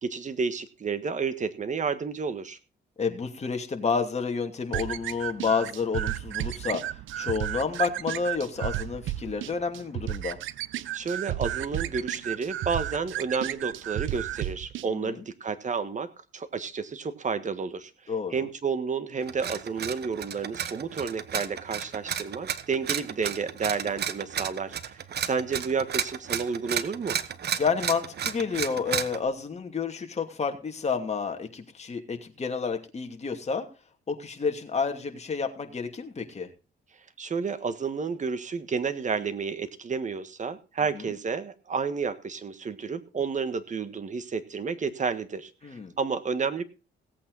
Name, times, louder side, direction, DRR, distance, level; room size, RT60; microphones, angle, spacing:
voice 1, 0.0-2.6 10.9-24.8 25.2-27.2 37.2-46.6, right 5 dB, 40° right, 12 dB, 1.5 m, -31 dB
voice 2, 3.0-6.8 7.2-10.4 14.9-15.2 18.1-18.5 27.6-33.7 34.1-36.5 40.9-41.0 45.6-45.9, left 5 dB, 35° left, 4 dB, 2.5 m, -30 dB
sound 1, 4.7-14.9, right 14 dB, 80° right, 0.7 m, -33 dB
sound 2, 19.2-29.2, right 8 dB, 55° right, 1.1 m, -33 dB
17.0 x 8.5 x 4.0 m, 0.33 s
cardioid pair, 90°, 20 cm